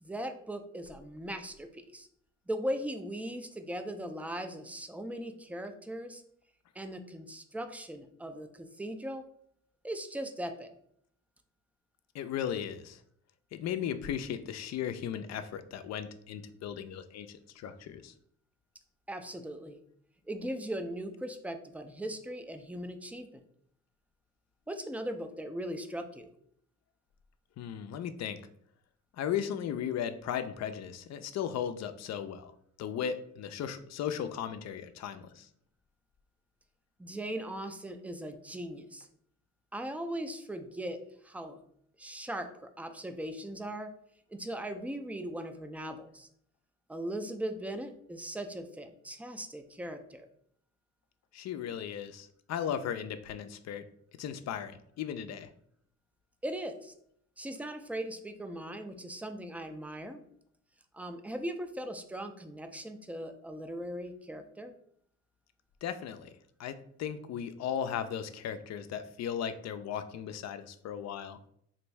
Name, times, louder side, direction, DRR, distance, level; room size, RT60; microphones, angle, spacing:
voice 1, 0.0-2.1 2.5-6.2 6.8-9.2 9.8-10.7 19.1-19.8 20.3-23.3 24.7-26.3 37.0-39.1 39.7-41.6 42.0-43.9 44.3-46.3 46.9-50.3 56.4-56.9 57.4-60.2 60.9-64.7, right 1 dB, 5° right, 7 dB, 0.3 m, -39 dB
voice 2, 12.1-13.0 13.5-18.1 27.6-28.4 29.2-32.5 32.8-35.5 51.3-53.9 54.2-55.5 65.8-66.3 66.6-71.4, left 9 dB, 60° left, 10 dB, 0.4 m, -36 dB
3.3 x 2.6 x 3.1 m, 0.67 s
cardioid pair, 90°, 30 cm